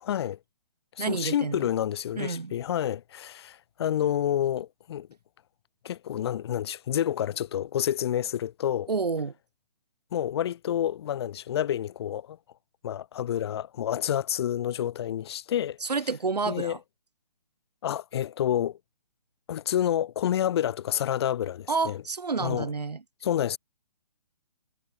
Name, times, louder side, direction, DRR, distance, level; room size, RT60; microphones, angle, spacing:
voice 1, 0.0-0.4 1.0-5.1 5.8-8.9 10.1-12.4 12.8-15.8 16.5-16.8 17.8-18.8 19.5-22.0 22.4-22.7 23.2-23.6, left 10 dB, 40° left, 0.7 m, -29 dB
voice 2, 1.0-1.6 2.2-2.6 8.9-9.3 15.8-16.8 21.7-23.0, right 4 dB, 85° right, 1.2 m, -29 dB
figure-of-eight pair, 140°, 20 cm